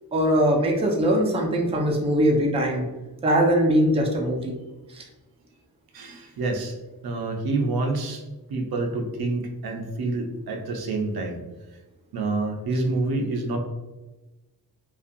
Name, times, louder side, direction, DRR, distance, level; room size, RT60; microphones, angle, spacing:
voice 1, 0.1-2.9 3.2-4.6 4.9-5.1, equal, 15° right, 0 dB, 0.4 m, -21 dB
voice 2, 5.9-6.7 7.0-8.2 8.5-11.4 12.1-13.6, right 2 dB, 75° right, 3 dB, 0.5 m, -27 dB
2.5 x 2.3 x 2.5 m, 1.1 s
wide cardioid pair, 95°, 37 cm